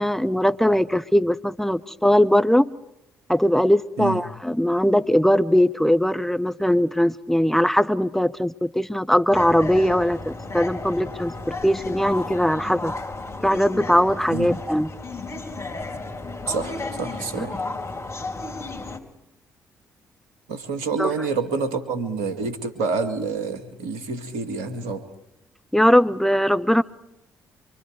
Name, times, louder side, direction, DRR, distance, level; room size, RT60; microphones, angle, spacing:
voice 1, 0.0-2.7 3.3-11.3 11.6-12.9 13.4-14.9 17.4-17.5 21.0-21.1 25.7-26.8, equal, 5° left, 12 dB, 1.0 m, -20 dB
sound 1, 9.3-19.0, left 2 dB, 35° left, 3.6 m, -33 dB
voice 2, 16.5-17.6 20.5-25.0, right 4 dB, 80° right, 8 dB, 1.9 m, -28 dB
25.0 x 25.0 x 5.1 m, 0.85 s
hypercardioid pair, 45°, 8 cm